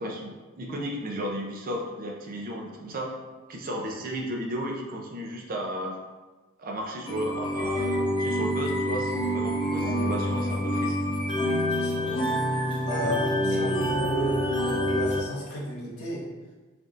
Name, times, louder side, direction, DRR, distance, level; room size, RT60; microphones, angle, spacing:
voice 1, 0.0-3.1 3.5-6.0 6.6-11.0 13.0-13.1 13.4-13.9, equal, 40° right, 0 dB, 0.6 m, -34 dB
sound 1, 7.1-15.2, equal, 25° left, 0.6 m, -27 dB
voice 2, 11.7-12.3 12.8-16.3, equal, 85° left, -5 dB, 1.1 m, -33 dB
3.9 x 3.4 x 2.4 m, 1.2 s
head